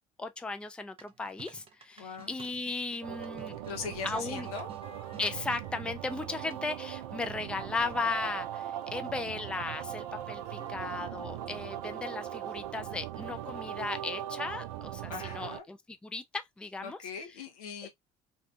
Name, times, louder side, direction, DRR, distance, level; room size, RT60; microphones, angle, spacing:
voice 1, 0.2-3.6 4.0-4.5 5.2-17.0 17.8-17.9, left 3 dB, 5° left, 0.4 m, -36 dB
sound 1, 1.0-5.3 6.5-6.9, right 5 dB, 30° right, 0.7 m, -54 dB
voice 2, 2.0-2.3 3.7-4.7 15.1-15.7 16.8-17.9, left 5 dB, 80° left, 0.7 m, -40 dB
sound 2, 3.0-15.6, right 12 dB, 80° right, 0.4 m, -40 dB
sound 3, 4.8-9.8 10.6-13.8, left 5 dB, 30° left, 0.9 m, -57 dB
2.7 x 2.4 x 2.2 m
hypercardioid pair, 60°, 19 cm